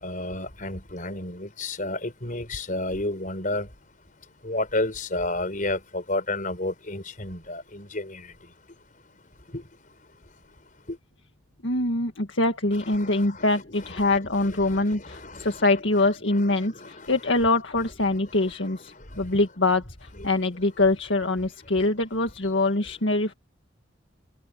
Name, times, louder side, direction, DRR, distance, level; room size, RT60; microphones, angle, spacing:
voice 1, 0.0-3.7 4.4-8.2 9.5-9.6 13.0-13.5 14.0-14.8 15.1-15.6 16.8-17.1, left 2 dB, 45° left, 5.7 m, -31 dB
voice 2, 11.6-16.7 17.1-18.8 19.2-19.8 20.2-23.3, left 2 dB, 70° left, 1.9 m, -24 dB
head